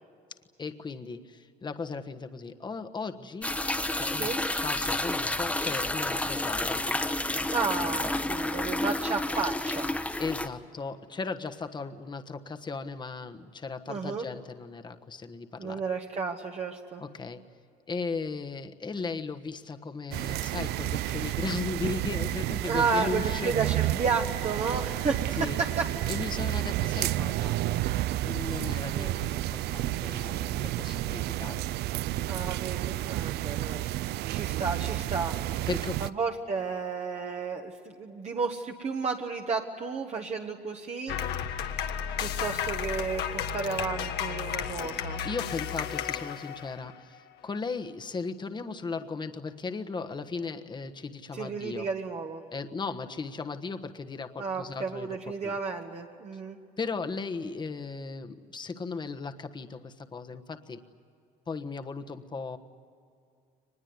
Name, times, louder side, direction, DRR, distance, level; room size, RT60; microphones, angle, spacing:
voice 1, 0.6-3.6 3.9-6.9 10.2-15.8 17.0-17.4 17.9-23.5 25.4-25.6 26.1-27.6 28.2-31.7 35.7-36.0 45.2-51.9 52.5-55.2 55.4-55.5 56.8-60.8 61.5-62.6, left 4 dB, 25° left, 6 dB, 1.3 m, -36 dB
sound 1, 3.4-10.5, left 1 dB, 5° left, 1.2 m, -30 dB
voice 2, 7.5-10.0 13.9-14.2 15.6-17.0 22.6-25.9 28.9-29.1 32.2-33.8 34.3-35.4 36.0-41.2 41.9-45.2 51.3-52.4 54.4-56.6, right 4 dB, 40° right, 1 dB, 1.5 m, -32 dB
sound 2, 20.1-36.1, right 15 dB, 75° right, 0.5 m, -31 dB
sound 3, 41.1-47.0, left 8 dB, 75° left, 1.6 m, -33 dB
24.0 x 21.0 x 9.6 m, 2.4 s
cardioid pair, 110°, 17 cm